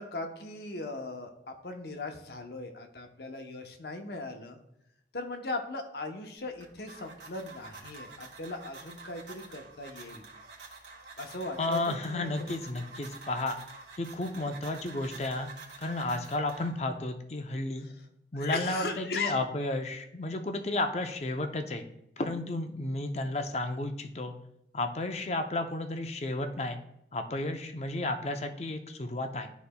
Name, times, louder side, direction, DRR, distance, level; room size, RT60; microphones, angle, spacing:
voice 1, 0.0-4.6 5.1-10.2 11.2-12.6 17.8-17.9 18.3-19.4, left 2 dB, 65° left, 4 dB, 0.8 m, -38 dB
sound 1, 6.4-17.0, right 3 dB, 85° right, 1.6 m, -48 dB
voice 2, 11.6-13.6 14.0-15.5 15.8-17.9 18.3-21.9 22.2-24.3 24.7-26.8 27.1-29.5, left 2 dB, 35° left, 6 dB, 0.5 m, -32 dB
11.5 x 4.0 x 2.2 m, 0.79 s
head